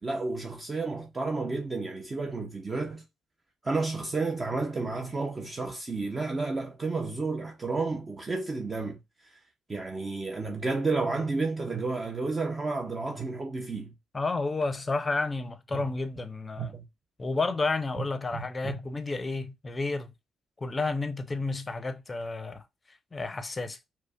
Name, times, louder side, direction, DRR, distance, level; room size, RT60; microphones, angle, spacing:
voice 1, 0.0-3.0 3.6-9.0 9.7-13.9 15.7-15.8 16.6-16.9 18.3-18.8, right 3 dB, 30° right, 0.5 m, -31 dB
voice 2, 14.1-16.7 17.2-20.1 20.6-22.6 23.1-23.8, left 3 dB, 25° left, 0.5 m, -31 dB
5.0 x 2.0 x 2.2 m
cardioid pair, 90°, 0 cm